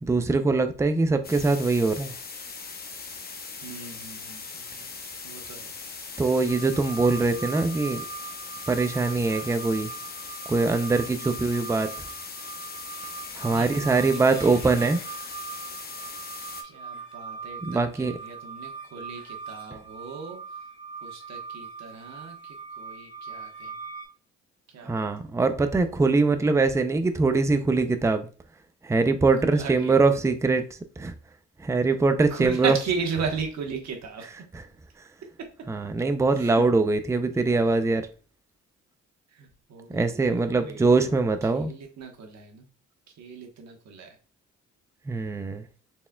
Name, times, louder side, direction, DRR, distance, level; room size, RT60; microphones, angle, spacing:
voice 1, 0.0-2.1 6.2-8.0 8.7-9.9 10.5-11.9 13.3-15.0 17.7-18.1 24.8-28.3 28.8-30.6 31.0-31.1 31.6-32.7 35.7-38.0 39.9-41.7 45.1-45.6, right 3 dB, 10° right, 0.4 m, -23 dB
sound 1, 1.2-16.6, left 4 dB, 30° left, 0.7 m, -40 dB
voice 2, 3.6-4.9 5.2-5.7 11.1-11.4 13.4-15.0 16.6-20.7 21.0-23.8 24.7-25.0 29.4-30.0 32.3-34.3 35.4-35.5 36.3-36.7 37.3-37.5 39.3-41.1 41.5-42.7 43.1-44.2, right 5 dB, 65° right, 1.2 m, -37 dB
sound 2, 6.5-24.1, right 5 dB, 50° left, 1.7 m, -41 dB
4.2 x 3.5 x 2.2 m
cardioid pair, 90°, 30 cm